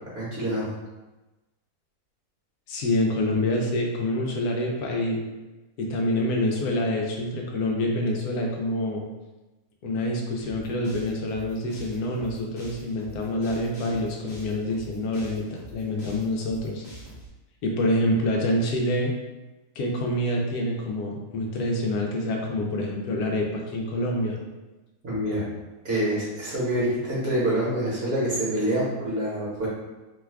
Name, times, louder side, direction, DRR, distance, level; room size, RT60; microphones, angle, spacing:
voice 1, 0.1-0.7 25.0-25.4 25.8-29.7, right 1 dB, 45° right, -8 dB, 1.2 m, -26 dB
voice 2, 2.7-5.2 5.8-9.0 9.8-16.8 17.6-19.1 19.8-24.4, left 1 dB, 85° left, 0 dB, 1.1 m, -26 dB
sound 1, 10.4-17.3, equal, 30° left, 0.7 m, -45 dB
3.0 x 2.3 x 3.3 m, 1.1 s
omnidirectional pair, 1.6 m